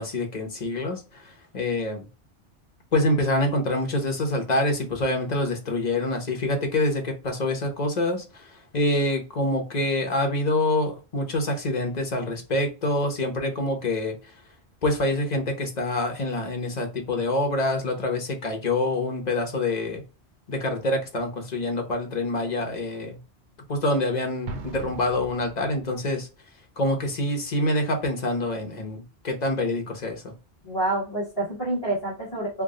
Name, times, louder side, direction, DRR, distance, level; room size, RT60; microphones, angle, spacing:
voice 1, 0.0-2.0 2.9-14.1 14.8-20.0 20.5-23.2 23.7-26.3 26.8-30.3, left 1 dB, 45° left, 1.0 m, -26 dB
Explosion, 24.5-26.2, right 4 dB, 85° right, 0.9 m, -40 dB
voice 2, 30.6-32.6, right 2 dB, 25° left, 1.4 m, -28 dB
3.5 x 2.1 x 3.7 m
omnidirectional pair, 1.1 m